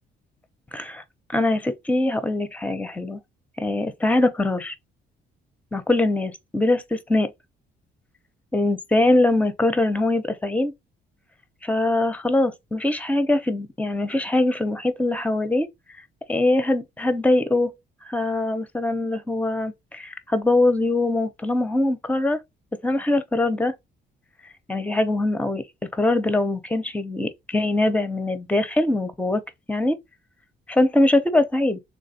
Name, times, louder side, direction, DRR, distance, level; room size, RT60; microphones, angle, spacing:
voice 1, 0.7-1.0 1.3-3.2 3.6-4.7 5.7-7.3 8.5-10.7 11.6-15.7 16.3-17.7 18.1-22.4 22.8-23.7 24.7-25.6 25.9-29.4 29.7-30.0 30.7-31.8, left 2 dB, 5° left, 0.6 m, -22 dB
3.2 x 3.2 x 2.7 m
cardioid pair, 90°, 20 cm